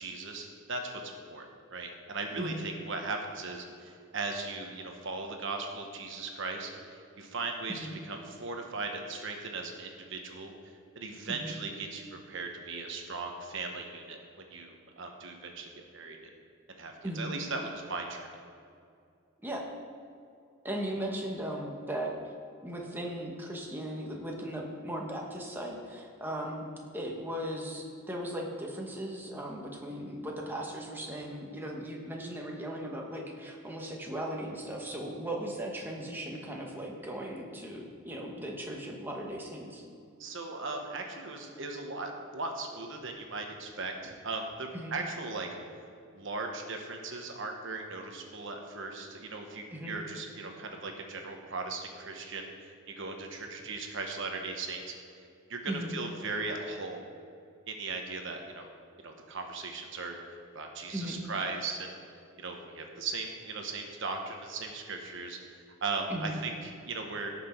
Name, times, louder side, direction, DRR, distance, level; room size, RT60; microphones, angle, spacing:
voice 1, 0.0-10.5 10.9-16.3 16.8-18.3 40.2-45.6 46.1-54.9 55.5-57.0 57.7-58.7 59.0-60.2 60.5-61.9 62.4-65.4 65.8-67.3, right 3 dB, 60° right, 3 dB, 1.1 m, -38 dB
voice 2, 17.0-17.3 19.4-19.6 20.6-22.3 22.6-26.6 26.9-39.8 44.7-44.9 49.7-49.9 55.7-55.9 60.9-61.2 66.1-66.3, right 1 dB, 10° right, -1 dB, 1.2 m, -37 dB
17.0 x 6.0 x 4.5 m, 2.4 s
head